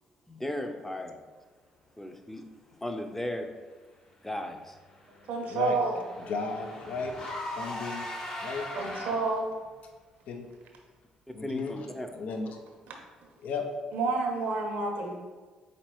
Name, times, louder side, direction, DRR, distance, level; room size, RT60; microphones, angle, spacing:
voice 1, 0.3-1.2 2.0-2.4 2.8-3.5 4.2-4.8 8.8-9.0 11.4-12.2, left 1 dB, 10° left, 5 dB, 0.6 m, -36 dB
Car / Engine, 4.5-9.5, left 1 dB, 45° left, 1.4 m, -40 dB
voice 2, 5.3-6.0 8.8-9.5 12.9-13.0 13.9-15.1, right 3 dB, 65° right, 2 dB, 0.7 m, -29 dB
voice 3, 6.3-7.1 7.6-8.1 8.4-8.6 10.3-10.5 11.3-11.7 12.2-12.6 13.4-13.6, left 4 dB, 65° left, 4 dB, 0.5 m, -33 dB
4.3 x 3.9 x 3.1 m, 1.4 s
hypercardioid pair, 50°, 3 cm